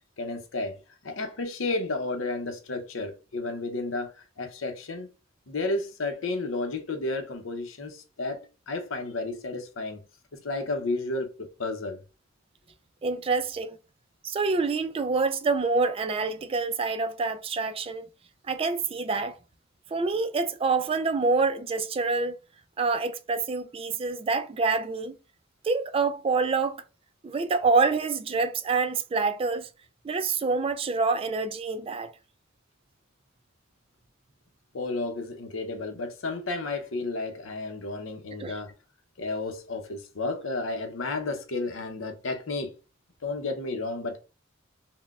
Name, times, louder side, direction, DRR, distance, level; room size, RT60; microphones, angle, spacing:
voice 1, 0.2-5.1 5.5-10.0 10.4-12.0 34.7-38.7 39.2-42.8 43.2-44.2, left 2 dB, 85° left, 0.7 m, -32 dB
voice 2, 13.0-13.8 14.2-18.0 18.5-19.3 19.9-22.3 22.8-25.1 25.6-26.8 27.2-29.7 30.0-32.1 38.4-38.5, right 4 dB, 30° right, 0.3 m, -26 dB
5.7 x 2.1 x 2.3 m
head